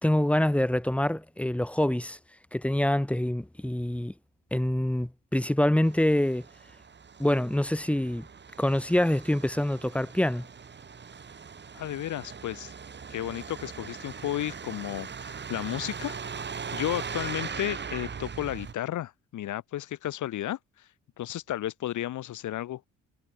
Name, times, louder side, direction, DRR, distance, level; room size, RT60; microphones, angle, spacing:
voice 1, 0.0-2.2 2.5-4.1 4.5-6.4 7.2-8.3 8.6-10.4, left 1 dB, 5° left, 2.1 m, -25 dB
Truck, 5.8-18.7, right 6 dB, 35° right, 2.1 m, -40 dB
voice 2, 11.7-12.7 13.1-20.9 21.2-22.9, left 13 dB, 75° left, 2.9 m, -33 dB
cardioid pair, 90°, 30 cm